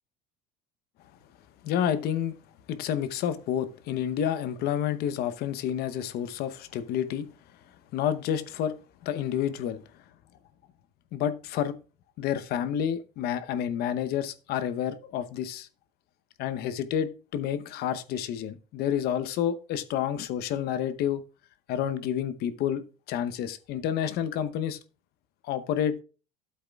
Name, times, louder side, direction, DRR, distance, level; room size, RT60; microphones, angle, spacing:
voice 1, 1.6-2.3 2.7-7.3 7.9-8.7 9.0-9.8 11.1-11.7 12.2-15.7 16.4-21.2 21.7-22.8 23.1-24.8 25.5-25.9, left 9 dB, 55° left, 0.9 m, -29 dB
13.0 x 7.9 x 2.3 m
supercardioid pair, 125°, 20 cm